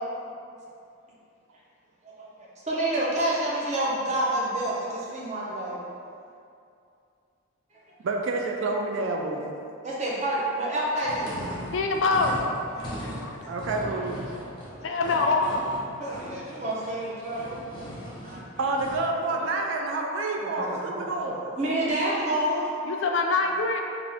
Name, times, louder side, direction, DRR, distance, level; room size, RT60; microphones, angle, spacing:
voice 1, 2.7-5.8 9.8-11.3 12.8-13.1 13.9-14.0 16.0-18.4 20.4-22.7, right 1 dB, 35° right, -6 dB, 0.6 m, -29 dB
voice 2, 8.0-9.6 13.3-14.3 18.6-21.4, right 2 dB, 65° right, 1 dB, 0.3 m, -29 dB
sound 1, 11.0-19.1, equal, 25° left, 0.7 m, -39 dB
voice 3, 11.7-12.5 13.0-13.4 14.8-15.6 22.9-23.8, left 3 dB, 60° left, 2 dB, 0.3 m, -25 dB
3.4 x 2.5 x 3.4 m, 2.5 s
head